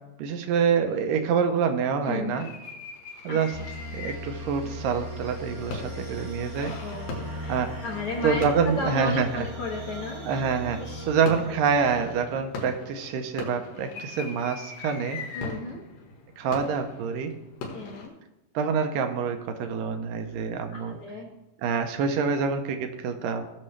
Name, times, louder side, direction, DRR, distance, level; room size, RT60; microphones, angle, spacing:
voice 1, 0.2-2.5 3.2-3.5 3.9-6.7 7.5-7.7 8.2-9.5 10.2-10.8 11.1-15.2 16.4-17.3 18.5-21.0 21.6-23.5, right 6 dB, 80° right, 6 dB, 2.4 m, -26 dB
voice 2, 2.0-2.5 3.3-3.4 6.6-10.4 10.8-11.1 11.5-11.6 15.3-15.8 17.7-18.1 20.7-21.3, left 3 dB, 55° left, -1 dB, 2.0 m, -34 dB
sound 1, 2.4-4.4 4.9-9.8 10.5-10.8 11.3-18.1, left 3 dB, 80° left, 3.2 m, -40 dB
sound 2, 3.5-12.9, equal, 25° right, 1.3 m, -39 dB
16.5 x 6.5 x 3.3 m, 0.94 s
omnidirectional pair, 4.0 m